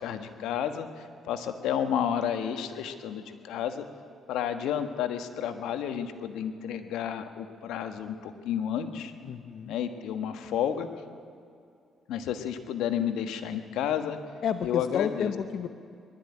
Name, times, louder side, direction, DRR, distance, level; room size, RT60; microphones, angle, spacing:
voice 1, 0.0-3.9 4.3-9.1 9.7-10.9 12.1-14.2 14.6-15.3, left 9 dB, 90° left, 8 dB, 1.4 m, -31 dB
voice 2, 9.2-9.7 14.4-15.7, left 7 dB, 65° left, 9 dB, 0.8 m, -31 dB
21.0 x 13.0 x 9.8 m, 2.4 s
cardioid pair, 90°, 0 cm